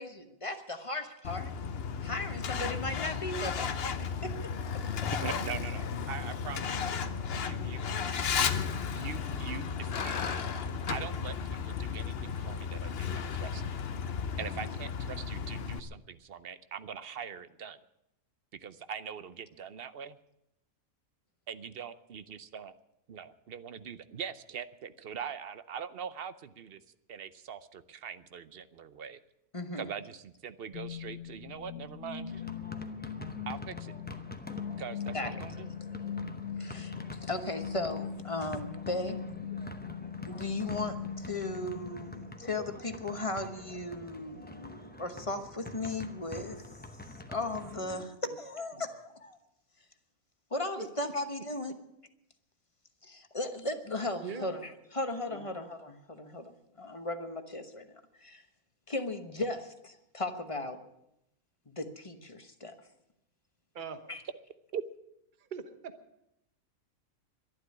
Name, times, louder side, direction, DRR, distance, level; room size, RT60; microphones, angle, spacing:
voice 1, 0.0-1.5 2.0-4.4 14.4-14.6 29.5-29.9 35.1-35.3 36.6-39.2 40.3-46.7 47.3-49.4 50.5-51.8 53.0-58.4 58.9-60.8 61.7-62.7 64.1-64.2, left 2 dB, 25° left, 7 dB, 1.0 m, -37 dB
Truck, 1.2-15.8, left 6 dB, 50° left, 1.0 m, -34 dB
voice 2, 5.1-6.8 7.4-8.2 8.9-10.5 10.9-13.6 14.4-17.8 18.6-20.2 21.5-22.7 23.1-29.2 29.8-32.4 33.5-33.9 34.8-35.7 64.7-64.8, right 7 dB, 55° right, 14 dB, 0.8 m, -42 dB
sound 1, 30.7-42.7, left 7 dB, 75° left, 1.4 m, -41 dB
sound 2, 32.3-48.1, left 1 dB, 10° left, 0.7 m, -47 dB
voice 3, 54.2-54.5 55.3-55.5 63.7-64.0 65.4-65.9, right 6 dB, 40° right, 9 dB, 1.1 m, -41 dB
12.0 x 11.5 x 9.6 m, 0.83 s
omnidirectional pair, 1.5 m